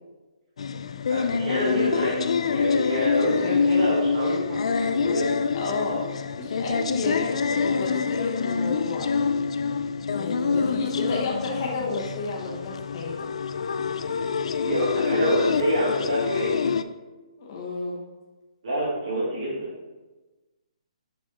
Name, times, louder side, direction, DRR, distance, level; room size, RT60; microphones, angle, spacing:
sound 1, 0.6-16.8, left 5 dB, 60° left, 0.3 m, -26 dB
voice 1, 1.1-5.3 14.6-16.7 18.6-19.7, equal, 50° right, -8 dB, 2.1 m, -27 dB
voice 2, 5.5-6.0 6.4-9.1 10.1-13.3 17.4-18.0, left 3 dB, 30° left, -3 dB, 0.8 m, -31 dB
7.0 x 4.2 x 3.6 m, 1.2 s
hypercardioid pair, 170°, 4 cm